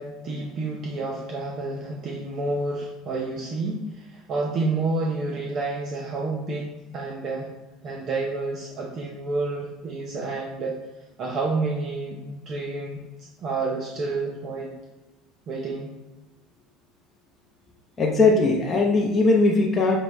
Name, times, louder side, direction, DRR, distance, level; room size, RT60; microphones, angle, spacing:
voice 1, 0.0-7.5 7.8-10.8 11.2-14.7 15.5-15.9, right 3 dB, 50° right, -1 dB, 0.7 m, -29 dB
voice 2, 18.0-20.0, left 3 dB, 25° left, -1 dB, 0.7 m, -19 dB
6.4 x 2.2 x 3.1 m, 1.1 s
supercardioid pair, 95°, 0 cm